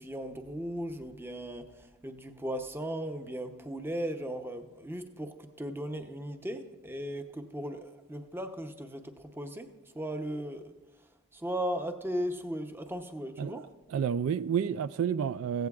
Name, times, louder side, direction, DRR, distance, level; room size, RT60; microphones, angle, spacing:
voice 1, 0.0-10.7 11.3-13.7, equal, 10° right, 0.7 m, -37 dB
voice 2, 13.9-15.7, right 7 dB, 70° right, 0.3 m, -30 dB
16.0 x 16.0 x 2.4 m
head